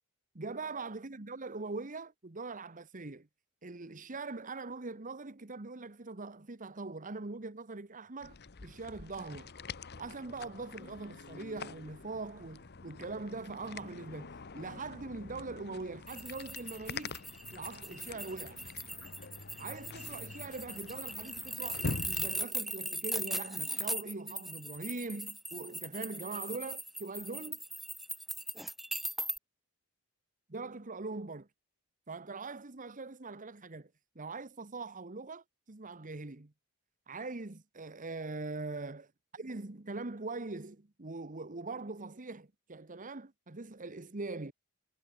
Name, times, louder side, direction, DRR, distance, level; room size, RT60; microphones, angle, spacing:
voice 1, 0.3-3.3 3.6-8.4 8.6-9.5 10.0-17.1 17.5-18.6 19.6-27.6 30.5-31.5 32.1-33.9 34.1-36.5 37.1-44.5, right 3 dB, 35° right, 1.2 m, -42 dB
sound 1, 8.2-22.5, left 3 dB, 50° left, 1.1 m, -45 dB
sound 2, 16.1-29.4, equal, ahead, 0.6 m, -39 dB
head